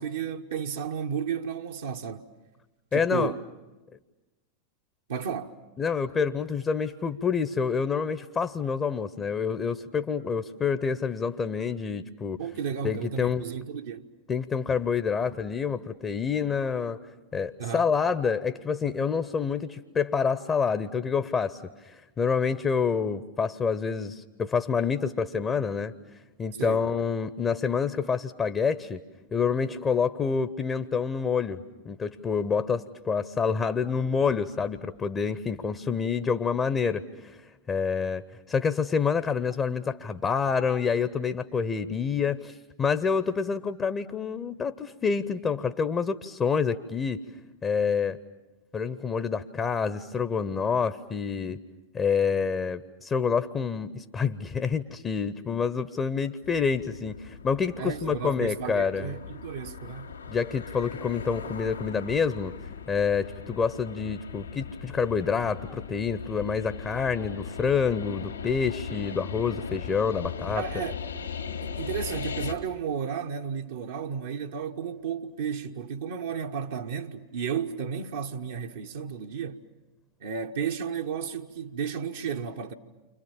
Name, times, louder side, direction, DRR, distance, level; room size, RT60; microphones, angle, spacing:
voice 1, 0.0-2.3 2.9-3.4 5.1-5.6 12.4-14.1 17.6-17.9 26.6-26.9 57.8-60.1 70.6-71.0 71.6-79.6 80.2-82.7, right 7 dB, 60° right, 1.0 m, -33 dB
voice 2, 2.9-3.3 5.8-12.4 12.8-13.4 14.3-17.0 17.3-25.9 26.4-29.0 29.3-37.4 37.7-47.2 47.6-48.2 48.7-51.6 51.9-59.1 60.3-62.5 62.9-70.6, left 6 dB, 20° left, 0.8 m, -27 dB
sound 1, 56.4-72.5, left 6 dB, 75° left, 2.3 m, -39 dB
30.0 x 26.0 x 7.2 m
figure-of-eight pair, 90°, 0 cm